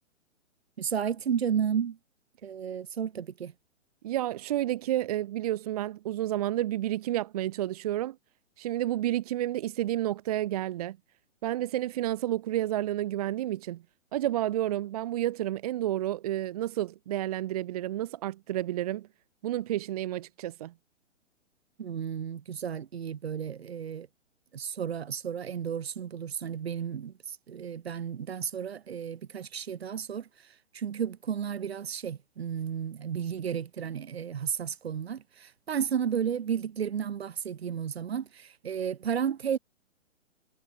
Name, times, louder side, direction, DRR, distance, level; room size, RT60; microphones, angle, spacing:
voice 1, 0.8-2.0 2.4-3.5 21.8-24.1 24.5-30.3 30.7-39.6, right 8 dB, 50° right, 1.7 m, -33 dB
voice 2, 4.0-8.2 8.6-11.0 11.4-13.8 14.1-19.1 19.4-20.7, right 13 dB, 30° right, 1.0 m, -30 dB
figure-of-eight pair, 125°, 38 cm